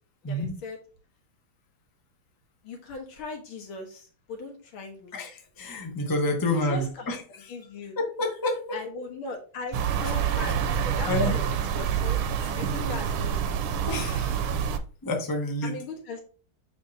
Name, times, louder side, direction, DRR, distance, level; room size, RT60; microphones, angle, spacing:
voice 1, 0.2-0.8 2.6-5.2 6.5-7.1 7.5-8.0 8.7-11.4 11.7-12.2 12.6-13.4 15.6-16.2, left 3 dB, 80° left, 2 dB, 2.3 m, -39 dB
voice 2, 5.1-7.5 8.0-8.8 11.1-11.4 13.9-14.4 15.0-15.8, left 1 dB, 15° left, 2 dB, 0.7 m, -29 dB
sound 1, 9.7-14.8, right 8 dB, 90° right, 1.5 m, -27 dB
7.2 x 5.1 x 2.8 m, 0.38 s
omnidirectional pair, 2.3 m